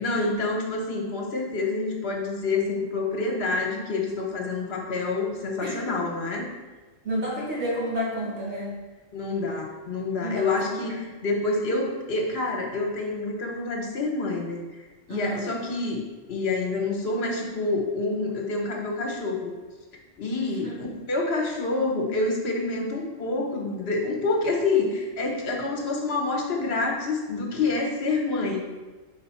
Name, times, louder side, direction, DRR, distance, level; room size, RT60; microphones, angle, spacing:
voice 1, 0.0-6.5 9.1-14.8 15.1-16.0 16.3-19.5 20.2-20.8 21.1-28.6, left 3 dB, 60° left, 0 dB, 1.2 m, -27 dB
voice 2, 5.6-6.0 7.0-8.8 10.2-11.0 15.1-15.5 20.6-20.9, equal, 65° right, -6 dB, 2.0 m, -31 dB
4.6 x 3.8 x 5.5 m, 1.2 s
omnidirectional pair, 1.2 m